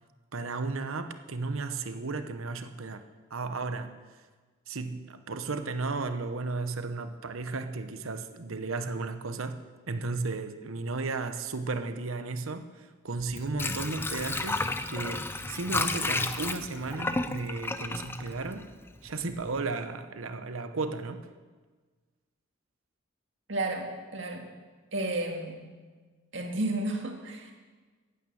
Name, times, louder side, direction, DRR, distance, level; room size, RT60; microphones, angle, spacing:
voice 1, 0.3-3.0 3.3-4.0 4.7-9.6 9.9-18.7 19.0-21.2, right 3 dB, 85° right, 9 dB, 0.9 m, -34 dB
Water / Sink (filling or washing), 13.2-19.1 19.4-19.5, left 2 dB, 10° left, 0.5 m, -32 dB
voice 2, 23.5-24.5 24.9-25.7 26.3-27.5, right 2 dB, 65° right, 2 dB, 2.1 m, -32 dB
15.5 x 9.2 x 7.1 m, 1.4 s
head